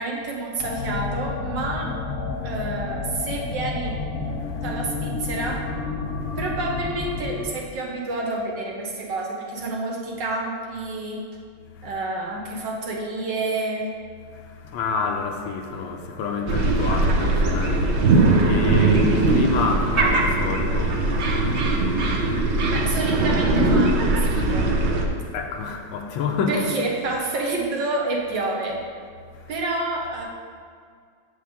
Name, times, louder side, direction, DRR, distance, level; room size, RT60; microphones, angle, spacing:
voice 1, 0.0-1.9 2.4-4.0 4.6-5.6 6.4-11.2 11.8-13.9 22.7-24.0 24.3-24.7 26.5-28.8 29.5-30.2, right 2 dB, 60° right, 1.6 m, -28 dB
sound 1, 0.6-7.5, left 4 dB, 50° left, 0.8 m, -30 dB
voice 2, 14.3-22.7 25.2-26.9 29.3-29.5, left 4 dB, 75° left, 1.4 m, -29 dB
sound 2, 16.5-25.0, right 2 dB, 75° right, 0.6 m, -20 dB
8.7 x 6.8 x 3.6 m
omnidirectional pair, 2.3 m